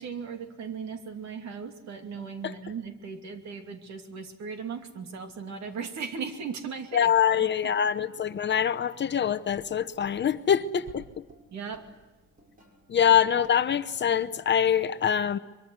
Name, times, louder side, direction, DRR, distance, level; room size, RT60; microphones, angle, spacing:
voice 1, 0.0-7.1 7.4-7.5 11.5-11.9, right 6 dB, 65° right, 2.9 m, -37 dB
voice 2, 6.9-11.0 12.9-15.4, left 8 dB, 35° left, 0.8 m, -24 dB
sound 1, 9.5-14.9, equal, 25° right, 6.5 m, -56 dB
24.0 x 23.0 x 8.1 m
cardioid pair, 150°, 30 cm